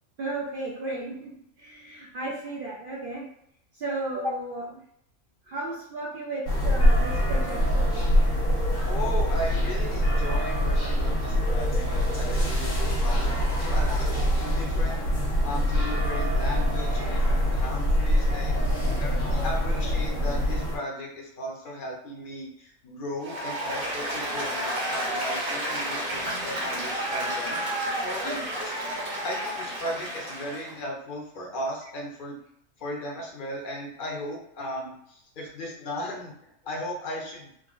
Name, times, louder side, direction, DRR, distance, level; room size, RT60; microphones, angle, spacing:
voice 1, 0.2-1.3 1.6-3.3 3.8-4.8 5.5-8.1 18.7-19.0 28.2-28.4, right 2 dB, 65° right, -3 dB, 0.5 m, -34 dB
sound 1, 6.5-20.8, equal, 70° left, 1.4 m, -24 dB
voice 2, 8.9-13.2 13.6-15.1 15.4-18.7 19.0-28.7 29.2-32.4 32.8-37.5, left 1 dB, 50° left, -1 dB, 0.7 m, -36 dB
Applause, 23.2-30.7, right 1 dB, 85° right, 1.5 m, -31 dB
3.6 x 2.0 x 2.4 m, 0.71 s
omnidirectional pair, 1.4 m